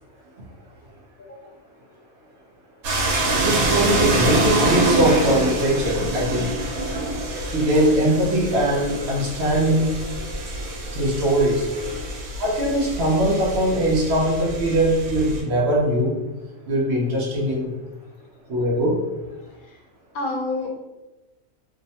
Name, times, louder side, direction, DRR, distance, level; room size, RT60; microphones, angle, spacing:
voice 1, 1.2-1.5 19.6-19.8 20.1-20.7, left 2 dB, 85° left, 1 dB, 1.0 m, -29 dB
sound 1, 2.8-15.4, right 2 dB, 85° right, 1.1 m, -26 dB
voice 2, 3.4-6.5 7.5-9.9 10.9-11.6 12.4-16.2 16.7-17.7 18.5-19.0, right 1 dB, 60° right, -3 dB, 0.8 m, -21 dB
2.7 x 2.0 x 2.7 m, 1.1 s
omnidirectional pair, 1.5 m